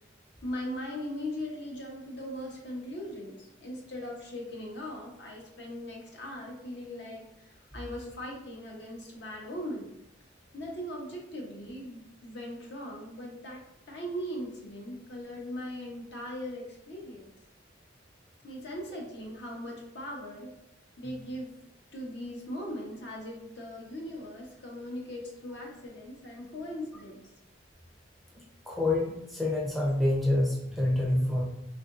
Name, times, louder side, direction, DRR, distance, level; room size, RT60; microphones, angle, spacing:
voice 1, 0.4-9.9 10.5-13.6 13.9-17.3 18.4-20.6 21.0-21.6 21.9-27.3, equal, 60° left, -1 dB, 0.8 m, -39 dB
voice 2, 28.7-31.4, left 1 dB, ahead, -4 dB, 0.5 m, -27 dB
3.6 x 2.5 x 2.4 m, 0.85 s
head